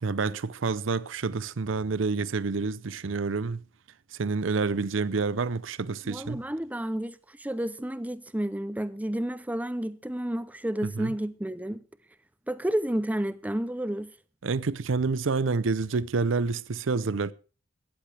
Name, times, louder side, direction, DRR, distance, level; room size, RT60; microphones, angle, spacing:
voice 1, 0.0-3.6 4.1-6.4 10.8-11.1 14.4-17.3, right 4 dB, 75° right, 0.6 m, -28 dB
voice 2, 6.1-11.8 12.5-14.1, right 1 dB, 10° right, 0.6 m, -31 dB
16.5 x 14.0 x 3.4 m
head